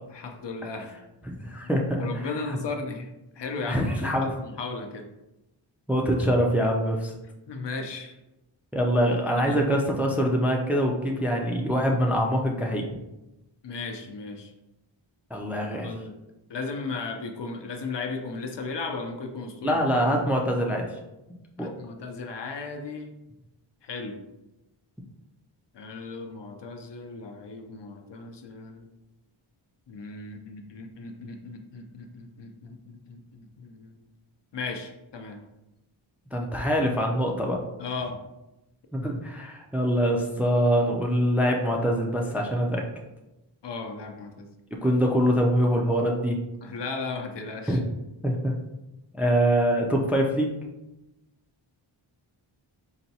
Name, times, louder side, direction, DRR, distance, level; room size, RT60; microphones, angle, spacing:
voice 1, 0.1-0.9 2.0-3.1 3.4-5.1 7.5-8.1 9.3-9.6 13.6-14.5 15.8-16.2 16.5-19.8 21.6-23.1 23.8-24.2 25.7-28.9 29.9-34.0 34.5-35.4 37.8-38.2 43.6-44.5 46.6-47.8, left 3 dB, 60° left, 4 dB, 0.6 m, -36 dB
voice 2, 1.3-2.6 3.7-4.3 5.9-7.1 8.7-12.9 15.3-15.9 19.6-20.9 21.6-21.7 36.3-37.6 38.9-42.8 44.8-46.4 47.7-47.8 48.2-48.5 49.2-50.5, equal, 5° right, 1 dB, 0.4 m, -24 dB
4.0 x 2.2 x 2.7 m, 0.96 s
wide cardioid pair, 55°, 49 cm